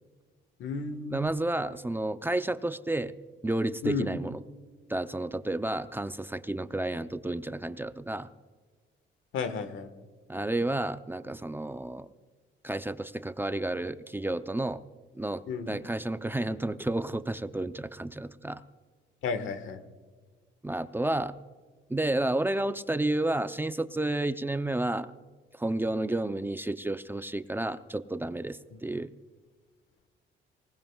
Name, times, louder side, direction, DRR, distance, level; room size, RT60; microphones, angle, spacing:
voice 1, 0.6-1.5 3.8-4.1 9.3-9.9 15.5-15.8 19.2-19.8 28.7-28.8, left 4 dB, 80° left, 10 dB, 1.5 m, -33 dB
voice 2, 1.1-3.1 3.4-4.4 4.9-8.3 10.3-12.1 12.6-14.8 15.1-18.6 20.6-21.3 21.9-25.1 25.5-29.1, right 1 dB, 10° right, 11 dB, 0.6 m, -31 dB
19.5 x 19.0 x 2.4 m, 1.5 s
cardioid pair, 90°, 20 cm